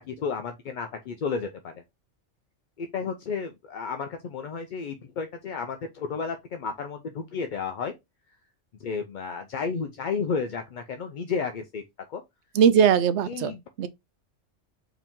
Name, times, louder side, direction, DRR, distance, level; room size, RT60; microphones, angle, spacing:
voice 1, 0.0-1.7 2.8-7.9 8.8-11.8 12.1-12.2 13.3-13.6, left 5 dB, 55° left, 0.5 m, -32 dB
voice 2, 12.5-13.9, right 8 dB, 70° right, 0.8 m, -20 dB
4.8 x 2.9 x 3.5 m
omnidirectional pair, 1.3 m